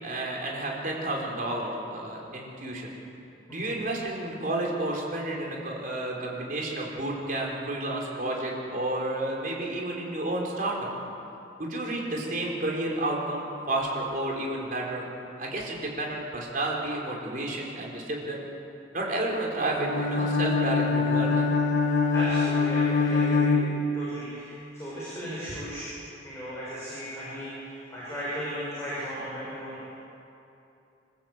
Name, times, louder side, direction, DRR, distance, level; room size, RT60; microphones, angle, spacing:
voice 1, 0.0-2.9 3.5-10.9 11.6-15.1 15.4-18.4 18.9-21.5, right 1 dB, 45° right, -2 dB, 4.6 m, -31 dB
Bowed string instrument, 19.8-24.3, left 4 dB, 45° left, 1.9 m, -24 dB
voice 2, 22.1-25.9 26.2-29.9, equal, 15° left, -9 dB, 6.5 m, -36 dB
27.5 x 14.5 x 8.2 m, 2.8 s
head